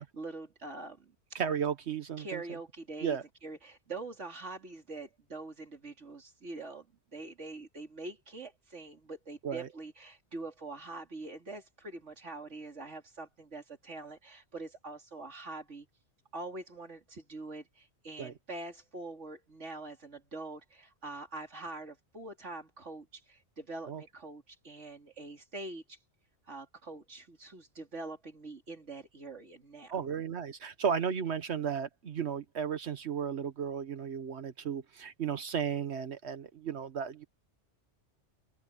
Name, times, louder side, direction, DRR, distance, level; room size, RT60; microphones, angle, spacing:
voice 1, 0.0-1.4 2.2-6.9 7.1-15.9 16.3-26.0 26.5-30.0, right 2 dB, 85° right, 3.4 m, -44 dB
voice 2, 1.3-2.4 3.0-3.2 9.4-9.7 18.2-18.3 23.9-24.0 29.9-37.2, right 7 dB, 70° right, 1.2 m, -34 dB
omnidirectional pair, 1.2 m